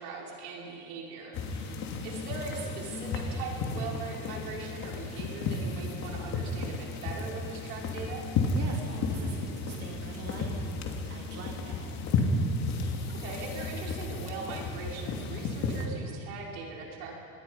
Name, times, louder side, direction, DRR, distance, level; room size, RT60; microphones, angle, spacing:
voice 1, 0.0-8.2 13.1-17.1, right 4 dB, 80° right, -2 dB, 5.8 m, -41 dB
sound 1, 1.3-15.9, left 3 dB, 40° left, 2.7 m, -33 dB
voice 2, 8.5-10.7 11.1-11.9, right 4 dB, 35° right, -1 dB, 2.9 m, -43 dB
25.5 x 19.5 x 5.6 m, 2.5 s
supercardioid pair, 145°, 43 cm